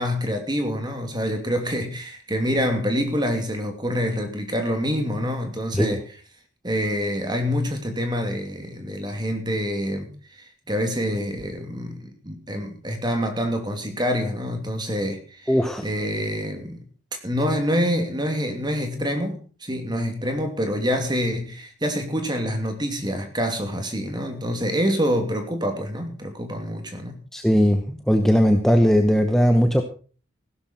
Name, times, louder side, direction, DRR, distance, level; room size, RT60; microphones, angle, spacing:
voice 1, 0.0-6.0 6.6-15.5 15.8-16.8 17.2-27.2, equal, 20° right, 5 dB, 2.8 m, -26 dB
voice 2, 15.5-15.8 27.3-29.8, equal, ahead, 5 dB, 0.9 m, -18 dB
15.5 x 12.0 x 4.4 m, 0.39 s
head